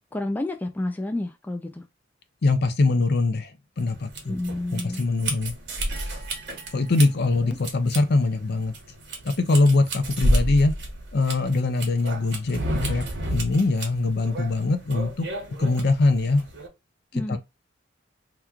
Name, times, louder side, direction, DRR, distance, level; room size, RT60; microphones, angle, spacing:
voice 1, 0.1-1.9 4.3-5.0 7.5-7.6 17.1-17.4, left 1 dB, 10° left, 0.3 m, -30 dB
voice 2, 2.4-3.5 3.8-4.4 4.7-5.5 6.7-8.7 9.2-10.7 11.1-15.3 15.6-16.4 17.1-17.4, left 3 dB, 60° left, 0.5 m, -22 dB
sound 1, 3.8-16.7, right 1 dB, 65° right, 1.0 m, -31 dB
3.0 x 2.3 x 3.5 m
head